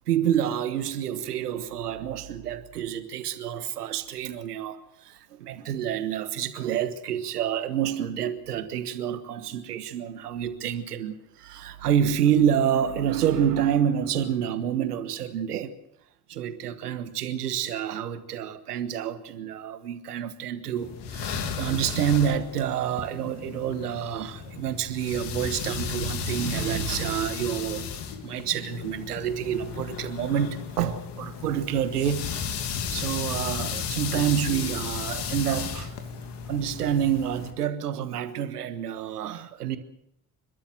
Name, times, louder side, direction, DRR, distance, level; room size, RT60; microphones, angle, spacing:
voice 1, 0.1-15.7 16.3-27.9 28.2-32.3 32.9-35.9 36.5-39.8, right 9 dB, 85° right, 1.4 m, -28 dB
sound 1, 20.8-37.5, left 6 dB, 65° left, 2.7 m, -34 dB
29.0 x 12.5 x 7.5 m
hypercardioid pair, 50°, 45 cm